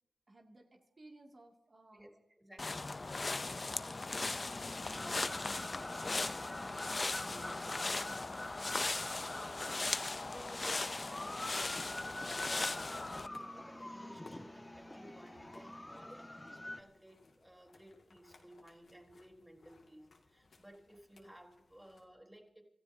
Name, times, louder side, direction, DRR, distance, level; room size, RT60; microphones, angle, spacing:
voice 1, 0.3-2.1 15.9-16.1, right 2 dB, 50° right, 0 dB, 2.4 m, -60 dB
voice 2, 1.9-2.9 5.2-8.1 8.4-22.6, equal, 10° right, 1 dB, 3.9 m, -57 dB
sound 1, 2.6-13.3, left 3 dB, 45° left, 0.6 m, -38 dB
sound 2, 4.9-16.8, left 1 dB, 20° left, 1.7 m, -47 dB
sound 3, 11.3-22.1, left 3 dB, 80° left, 2.1 m, -64 dB
27.0 x 14.0 x 2.8 m, 0.91 s
cardioid pair, 50°, 0 cm